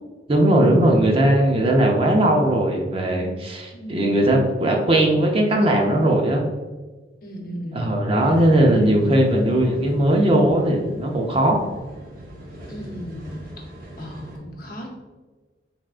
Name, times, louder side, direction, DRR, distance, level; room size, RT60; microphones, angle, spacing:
voice 1, 0.3-6.4 7.7-11.6, right 1 dB, 30° right, 1 dB, 0.5 m, -18 dB
voice 2, 3.7-4.1 7.2-8.0 8.3-9.0 12.7-13.4 14.0-14.9, equal, 55° left, 0 dB, 0.8 m, -35 dB
sound 1, 8.2-14.4, equal, 55° right, 0.8 m, -41 dB
3.5 x 3.5 x 2.4 m, 1.3 s
head